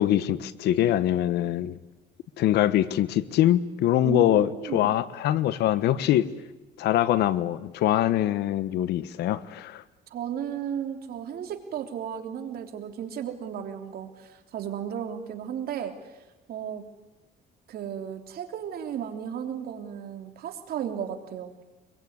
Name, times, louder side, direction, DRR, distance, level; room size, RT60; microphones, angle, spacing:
voice 1, 0.0-1.8 2.4-6.3 6.8-9.8, left 12 dB, 75° left, 1.2 m, -23 dB
voice 2, 4.0-4.9 10.1-15.9 16.5-16.8 17.7-21.5, right 9 dB, 65° right, 3.3 m, -34 dB
24.5 x 22.5 x 9.6 m
cardioid pair, 110°, 17 cm